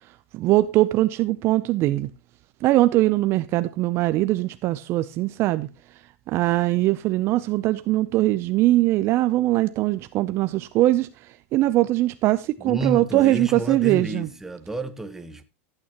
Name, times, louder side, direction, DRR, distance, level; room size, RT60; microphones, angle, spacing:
voice 1, 0.3-2.1 2.6-5.7 6.3-11.1 11.5-14.3, right 16 dB, 35° right, 0.5 m, -21 dB
voice 2, 12.6-15.4, right 2 dB, 5° right, 1.1 m, -30 dB
15.0 x 8.9 x 2.9 m
supercardioid pair, 145°, 7 cm